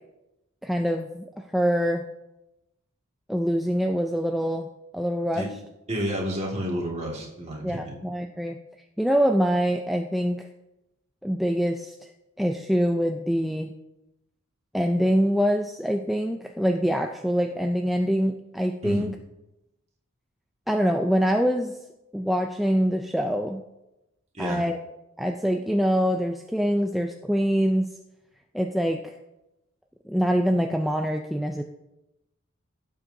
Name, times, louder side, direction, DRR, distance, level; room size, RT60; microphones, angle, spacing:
voice 1, 0.6-1.2 1.5-2.0 3.3-5.5 7.6-8.6 9.0-10.4 11.2-12.1 12.4-13.7 14.7-19.1 20.7-21.8 22.1-23.6 24.4-24.8 25.2-27.9 28.5-29.0 30.1-31.6, equal, ahead, 3 dB, 0.3 m, -24 dB
voice 2, 5.9-8.0 18.8-19.1 24.3-24.6, equal, 30° right, -2 dB, 1.9 m, -30 dB
16.5 x 7.3 x 2.7 m, 0.95 s
head